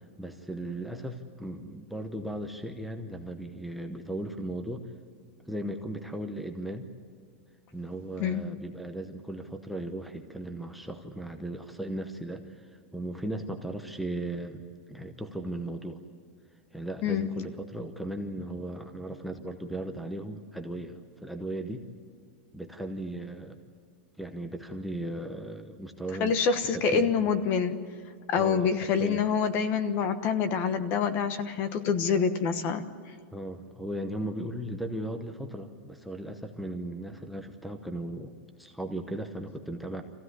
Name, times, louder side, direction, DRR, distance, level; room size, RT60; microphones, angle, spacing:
voice 1, 0.2-4.9 5.5-6.9 7.7-14.6 14.9-16.0 16.7-21.9 22.5-23.6 24.2-26.3 26.7-27.3 28.4-29.2 33.3-38.3 38.6-40.0, right 1 dB, ahead, 6 dB, 0.9 m, -37 dB
voice 2, 26.2-27.8 28.3-32.9, left 6 dB, 35° left, 10 dB, 1.2 m, -26 dB
25.0 x 15.5 x 9.7 m, 2.1 s
supercardioid pair, 165°, 6 cm